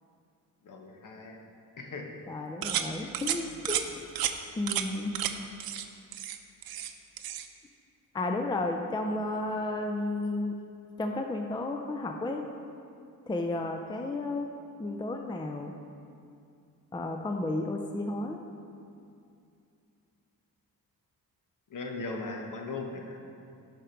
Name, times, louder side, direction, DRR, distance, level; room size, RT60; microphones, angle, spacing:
voice 1, 0.6-1.4 1.8-2.2 3.0-3.1 21.7-23.1, left 3 dB, 55° left, 2 dB, 1.2 m, -38 dB
voice 2, 2.3-3.9 4.6-5.2 8.1-10.6 11.0-12.5 13.3-14.5 14.8-15.7 16.9-18.4, left 2 dB, 10° left, 4 dB, 0.5 m, -32 dB
sound 1, 2.6-2.9 3.1-3.4 3.6-3.8 4.2-4.3 4.7-4.9 5.1-5.3 5.6-5.8 6.1-6.9 7.2-7.5, right 11 dB, 70° right, 0.6 m, -31 dB
11.5 x 5.1 x 4.5 m, 2.5 s
cardioid pair, 100°, 37 cm